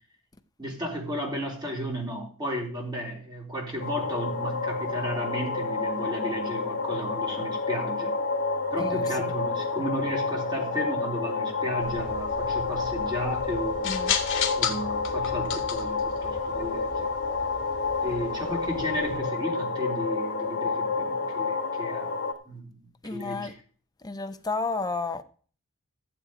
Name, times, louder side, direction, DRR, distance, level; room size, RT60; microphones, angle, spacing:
voice 1, 0.6-8.2 8.7-14.0 14.6-17.1 18.0-22.1 22.5-22.8 23.1-23.5, equal, 20° right, 3.6 m, -33 dB
sound 1, 3.8-22.3, left 4 dB, 40° left, 1.6 m, -29 dB
voice 2, 8.8-9.3 13.8-14.2 23.0-23.5 24.0-25.2, left 3 dB, 15° left, 0.8 m, -32 dB
sound 2, 11.8-19.2, left 7 dB, 60° left, 1.7 m, -35 dB
14.5 x 7.6 x 5.0 m
head